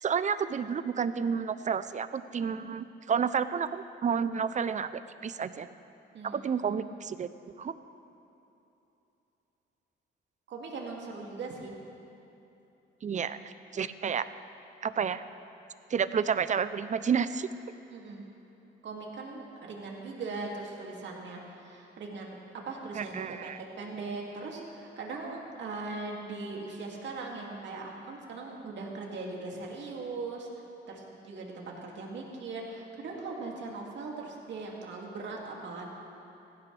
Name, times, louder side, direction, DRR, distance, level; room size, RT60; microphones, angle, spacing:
voice 1, 0.0-5.7 6.2-7.3 7.6-7.7 13.0-14.3 14.8-15.2 15.9-17.5 22.9-23.6, right 7 dB, 40° right, 13 dB, 0.6 m, -30 dB
voice 2, 6.1-6.7 10.5-11.7 17.9-18.2 18.8-30.5 30.9-35.9, right 3 dB, 65° right, -1 dB, 2.5 m, -40 dB
18.0 x 15.5 x 3.4 m, 3.0 s
cardioid pair, 90°, 20 cm